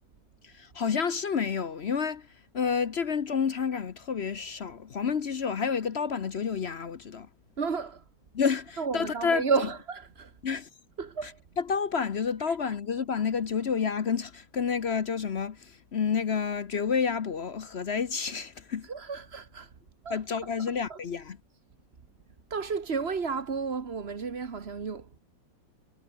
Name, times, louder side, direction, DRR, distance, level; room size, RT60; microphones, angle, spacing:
voice 1, 0.4-2.3 2.5-7.3 8.3-9.4 10.4-10.7 11.2-11.3 11.6-18.9 20.1-21.4, left 6 dB, 50° left, 0.8 m, -29 dB
voice 2, 7.6-8.0 8.8-10.3 11.0-11.4 18.9-19.7 20.0-20.2 20.9-21.0 22.5-25.1, right 5 dB, 35° right, 1.3 m, -32 dB
omnidirectional pair, 2.2 m